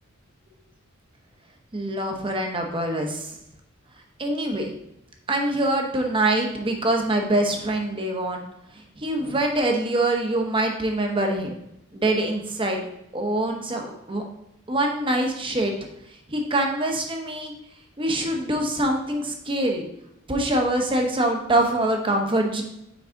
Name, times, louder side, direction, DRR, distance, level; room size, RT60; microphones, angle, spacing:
voice 1, 1.7-3.4 4.2-4.7 5.3-8.4 8.7-11.6 11.9-12.8 13.1-14.2 14.7-15.7 16.3-17.5 18.0-19.8 20.3-22.6, right 1 dB, 25° right, 3 dB, 0.9 m, -24 dB
6.1 x 4.7 x 3.8 m, 0.81 s
head